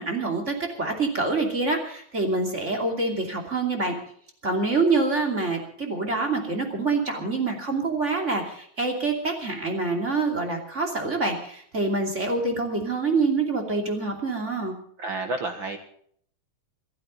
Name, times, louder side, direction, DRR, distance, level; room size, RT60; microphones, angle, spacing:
voice 1, 0.0-4.0 4.4-14.8, right 3 dB, 20° right, 2 dB, 2.7 m, -26 dB
voice 2, 15.0-15.8, right 2 dB, 55° right, 5 dB, 1.4 m, -30 dB
27.0 x 11.5 x 4.0 m, 0.62 s
omnidirectional pair, 3.9 m